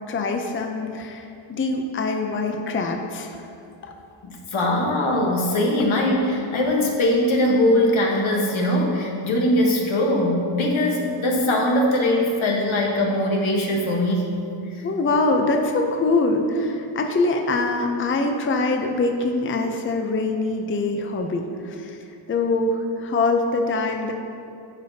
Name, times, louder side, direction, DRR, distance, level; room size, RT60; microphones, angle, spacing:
voice 1, 0.1-3.4 3.8-3.9 14.8-22.0 22.3-24.1, left 3 dB, 25° left, 3 dB, 0.5 m, -24 dB
voice 2, 4.2-14.3, left 1 dB, 80° left, -1 dB, 1.3 m, -21 dB
12.0 x 4.9 x 2.8 m, 2.6 s
wide cardioid pair, 100°, 47 cm